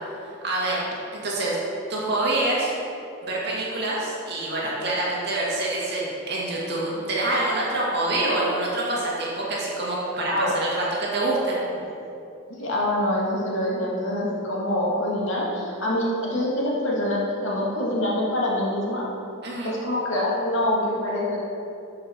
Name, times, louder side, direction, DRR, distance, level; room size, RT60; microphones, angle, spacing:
voice 1, 0.2-0.9 1.1-1.6 1.9-2.7 3.2-11.6 19.4-19.7, right 2 dB, 50° right, -5 dB, 2.0 m, -26 dB
voice 2, 10.3-10.6 12.6-19.1 19.6-21.4, left 1 dB, 65° left, -4 dB, 2.0 m, -25 dB
11.5 x 5.6 x 4.4 m, 2.7 s
head